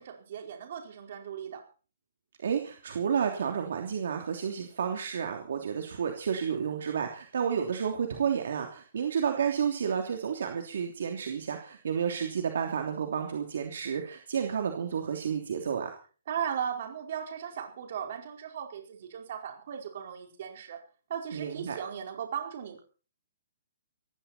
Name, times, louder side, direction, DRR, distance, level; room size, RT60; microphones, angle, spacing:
voice 1, 0.0-1.6 16.3-20.8 21.1-22.8, right 8 dB, 45° right, 3 dB, 4.8 m, -37 dB
voice 2, 2.4-15.9 21.3-21.8, right 7 dB, 60° right, 3 dB, 3.1 m, -31 dB
18.5 x 16.0 x 4.4 m, 0.39 s
hypercardioid pair, 175°, 0 cm